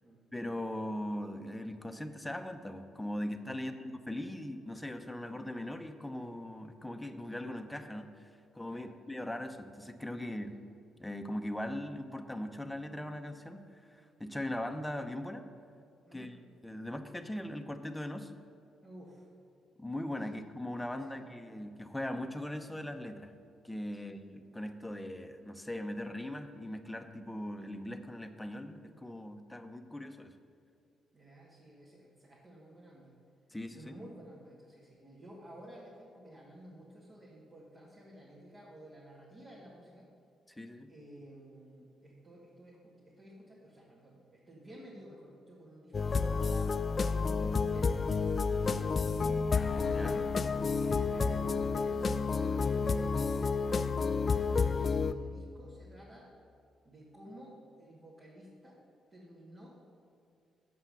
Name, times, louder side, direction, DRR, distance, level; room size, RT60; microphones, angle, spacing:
voice 1, 0.3-10.6 11.0-15.4 16.1-16.4 16.6-18.3 19.8-23.3 23.6-30.4 33.5-33.9 40.5-40.9 49.9-50.3, left 1 dB, 10° left, 7 dB, 0.8 m, -40 dB
voice 2, 18.8-19.3 20.3-20.4 20.8-21.3 24.0-24.1 31.1-33.1 33.7-40.1 40.9-46.7 47.1-49.0 50.6-56.3 56.8-58.8 59.1-59.7, equal, 40° right, -6 dB, 2.2 m, -53 dB
sound 1, 45.9-55.1, left 4 dB, 45° left, 0.4 m, -30 dB
7.1 x 5.6 x 7.1 m, 2.4 s
hypercardioid pair, 55°, 0 cm